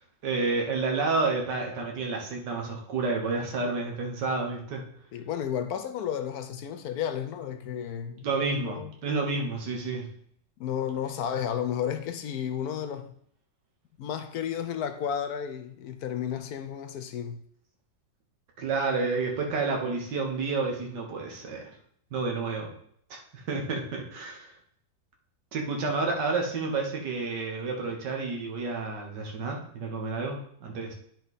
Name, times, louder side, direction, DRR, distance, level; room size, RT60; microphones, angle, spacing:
voice 1, 0.2-4.8 8.2-10.1 18.6-21.6 22.1-22.7 23.1-24.5 25.5-30.9, right 3 dB, 80° right, 1.9 m, -30 dB
voice 2, 5.1-8.9 10.6-13.1 14.0-17.4, left 9 dB, 70° left, 1.0 m, -32 dB
9.7 x 4.7 x 4.1 m
omnidirectional pair, 1.8 m